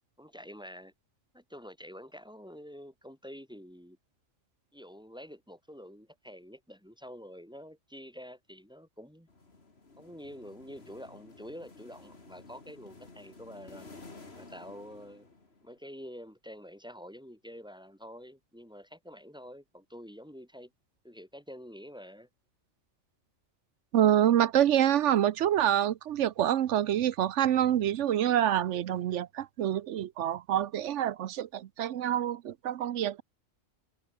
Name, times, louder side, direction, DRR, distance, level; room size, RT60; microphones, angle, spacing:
voice 1, 0.2-0.9 1.3-4.0 4.7-9.3 10.0-13.9 14.4-15.3 15.6-20.7 21.0-22.3, equal, 5° right, 2.7 m, -47 dB
sound 1, 9.3-15.8, left 3 dB, 50° left, 3.0 m, -52 dB
voice 2, 23.9-33.2, right 11 dB, 70° right, 1.0 m, -26 dB
omnidirectional pair, 1.3 m